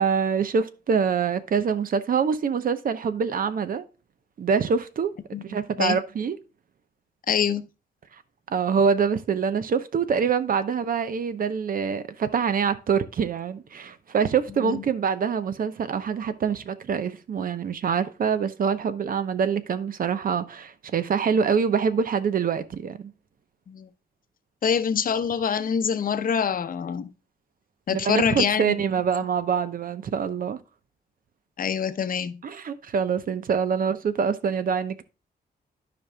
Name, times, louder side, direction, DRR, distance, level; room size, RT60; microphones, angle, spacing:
voice 1, 0.0-3.8 4.4-6.4 8.5-23.1 27.9-30.6 32.4-35.0, right 6 dB, 60° right, 0.8 m, -25 dB
voice 2, 5.3-6.0 7.3-7.6 14.6-14.8 23.7-23.9 24.6-27.1 27.9-28.8 31.6-32.4, left 7 dB, 60° left, 0.7 m, -25 dB
12.5 x 5.3 x 2.2 m
wide cardioid pair, 130°, 17 cm